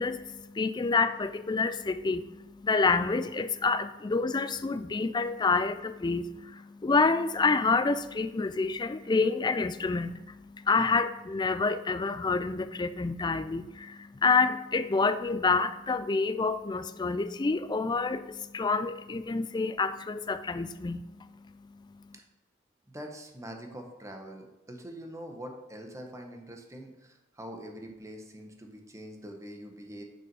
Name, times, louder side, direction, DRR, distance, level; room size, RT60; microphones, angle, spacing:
voice 1, 0.0-21.8, left 4 dB, 20° left, 11 dB, 0.4 m, -28 dB
voice 2, 22.9-30.0, equal, 15° right, 3 dB, 1.1 m, -44 dB
6.0 x 5.9 x 5.4 m, 1.0 s
head